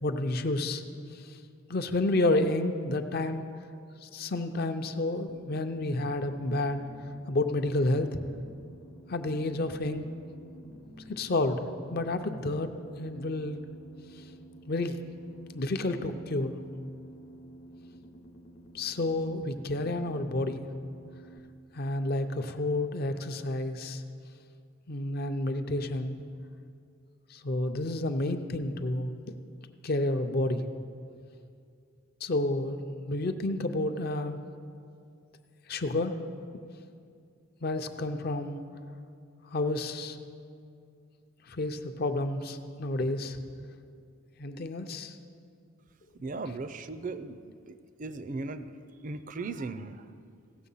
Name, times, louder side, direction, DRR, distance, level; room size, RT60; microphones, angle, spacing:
voice 1, 0.0-0.8 1.7-3.5 4.0-6.8 7.3-8.2 9.1-10.0 11.1-11.6 11.9-12.7 13.0-13.6 14.7-15.0 15.5-16.6 18.7-20.7 21.7-24.0 24.9-26.2 27.3-29.1 29.8-30.6 32.2-32.8 33.1-34.4 35.7-36.2 37.6-38.6 39.5-40.2 41.5-43.4 44.4-45.1, left 2 dB, 50° left, 8 dB, 0.6 m, -30 dB
sound 1, 5.3-21.4, right 1 dB, 85° left, 1.0 m, -52 dB
voice 2, 46.2-50.1, right 3 dB, 40° right, 12 dB, 0.5 m, -38 dB
16.5 x 6.7 x 5.6 m, 2.4 s
head